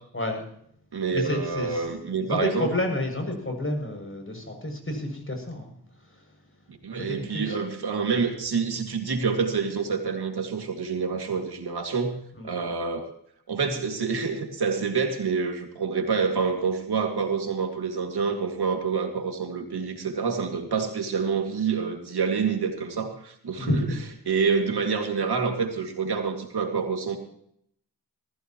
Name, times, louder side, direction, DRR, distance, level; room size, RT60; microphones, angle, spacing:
voice 1, 0.1-0.5 1.1-1.8 2.3-5.7 6.0-6.2 7.0-7.5 12.4-12.5 23.6-24.0, left 1 dB, 35° left, 3 dB, 7.1 m, -30 dB
voice 2, 0.9-2.7 6.8-13.1 13.5-23.9 24.3-27.2, right 5 dB, 75° right, 3 dB, 2.4 m, -27 dB
19.5 x 15.0 x 3.1 m, 0.67 s
cardioid pair, 40°, 39 cm